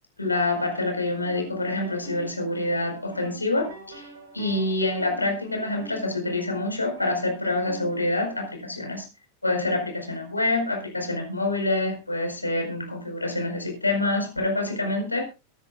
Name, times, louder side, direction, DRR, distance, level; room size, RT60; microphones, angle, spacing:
voice 1, 0.2-4.1 4.3-9.0 9.4-15.2, left 2 dB, 85° left, 3 dB, 4.7 m, -26 dB
sound 1, 1.2-8.6, right 2 dB, 65° right, 4.4 m, -45 dB
23.0 x 10.5 x 2.4 m, 0.29 s
figure-of-eight pair, 90°, 0 cm